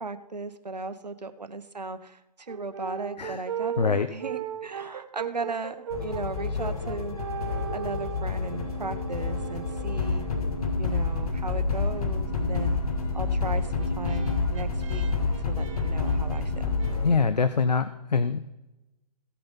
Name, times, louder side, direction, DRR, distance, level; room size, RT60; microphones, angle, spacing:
voice 1, 0.0-10.3 10.8-12.8 13.1-15.0 15.5-16.8, right 3 dB, 85° right, 10 dB, 0.9 m, -37 dB
Brass instrument, 2.5-10.8 13.3-17.0, right 9 dB, 50° right, 0.8 m, -38 dB
voice 2, 3.8-4.1 17.0-18.4, left 5 dB, 85° left, 12 dB, 0.6 m, -24 dB
sound 1, 5.9-17.2, left 4 dB, 60° left, 1.9 m, -28 dB
16.0 x 5.8 x 5.5 m, 0.97 s
figure-of-eight pair, 130°, 21 cm